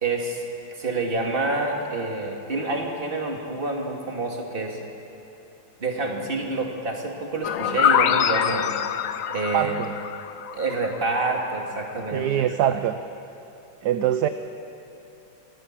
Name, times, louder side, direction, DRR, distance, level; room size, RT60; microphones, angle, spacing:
voice 1, 0.0-4.8 5.8-8.7 9.3-9.8 10.5-12.3 12.7-12.8, right 3 dB, 30° right, 1 dB, 2.4 m, -28 dB
sound 1, 7.4-11.2, left 9 dB, 60° left, 0.9 m, -24 dB
voice 2, 9.5-9.9 12.1-12.9 13.8-14.3, right 11 dB, 70° right, 10 dB, 1.2 m, -23 dB
23.0 x 16.5 x 7.5 m, 2.9 s
omnidirectional pair, 2.0 m